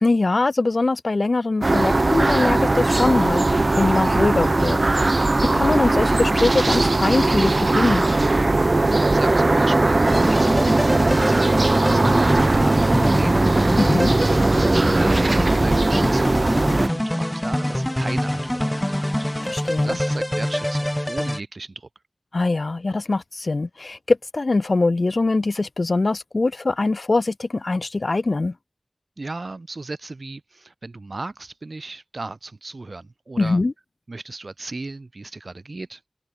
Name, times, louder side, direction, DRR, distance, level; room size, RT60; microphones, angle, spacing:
voice 1, 0.0-4.8 5.5-8.1 13.8-14.1 19.4-20.0 22.3-28.5 33.4-33.7, left 3 dB, 80° left, 0.4 m, -22 dB
sound 1, 1.6-16.9, right 2 dB, 65° right, 1.3 m, -19 dB
voice 2, 8.8-13.8 14.2-21.9 29.2-33.6 34.1-36.0, right 3 dB, 80° right, 4.0 m, -35 dB
sound 2, 10.1-21.4, left 1 dB, 15° left, 0.4 m, -25 dB
open air
wide cardioid pair, 45°, 0 cm